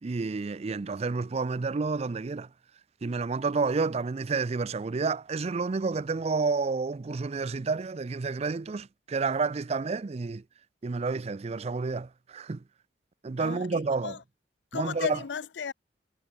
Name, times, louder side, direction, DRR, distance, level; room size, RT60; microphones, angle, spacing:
voice 1, 0.0-2.5 3.0-10.4 10.8-12.6 13.2-14.2 14.7-15.2, right 4 dB, 35° right, 0.4 m, -30 dB
voice 2, 13.4-14.2 14.7-15.7, left 6 dB, 70° left, 0.5 m, -35 dB
head